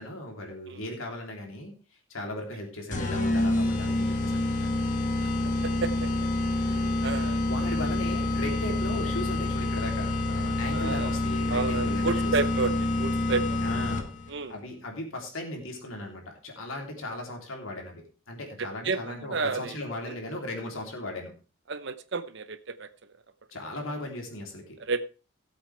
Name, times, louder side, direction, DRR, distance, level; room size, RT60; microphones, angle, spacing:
voice 1, 0.0-1.8 2.1-4.7 6.6-7.0 7.4-12.4 13.6-21.3 23.5-24.8, left 1 dB, 75° left, 1 dB, 3.4 m, -37 dB
sound 1, 2.9-14.3, left 2 dB, 40° left, 1.6 m, -27 dB
voice 2, 5.6-6.1 6.7-7.4 10.7-11.2 11.5-13.6 14.3-14.5 18.6-19.8 21.7-22.9 24.9-25.1, right 4 dB, 60° right, 12 dB, 0.8 m, -31 dB
17.0 x 8.0 x 3.4 m, 0.34 s
head